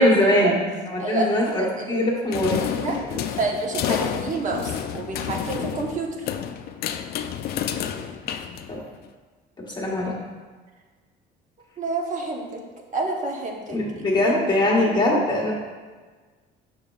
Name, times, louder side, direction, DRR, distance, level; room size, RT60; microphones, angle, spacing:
voice 1, 0.0-2.6 8.7-8.8 9.8-10.1 13.7-15.5, left 1 dB, 25° left, -3 dB, 1.4 m, -21 dB
voice 2, 1.0-2.1 2.6-3.0 3.4-6.1 11.8-12.6 12.9-13.8 14.3-14.4, right 3 dB, 45° right, 1 dB, 1.1 m, -29 dB
sound 1, 2.3-9.1, left 9 dB, 65° left, 0.4 m, -30 dB
6.9 x 6.2 x 2.4 m, 1.4 s
cardioid pair, 110°, 17 cm